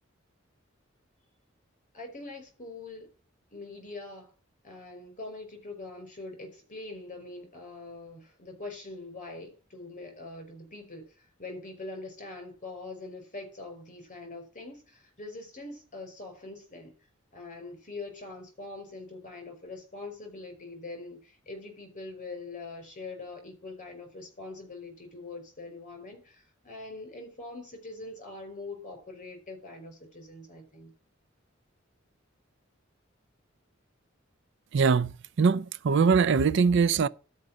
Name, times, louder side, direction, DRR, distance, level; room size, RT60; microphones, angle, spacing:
voice 1, 1.9-3.1 3.5-4.3 4.6-16.9 17.3-30.9, left 3 dB, 40° left, 5.3 m, -43 dB
voice 2, 34.7-35.1 35.4-37.1, right 5 dB, 65° right, 0.4 m, -22 dB
12.0 x 5.2 x 7.3 m
head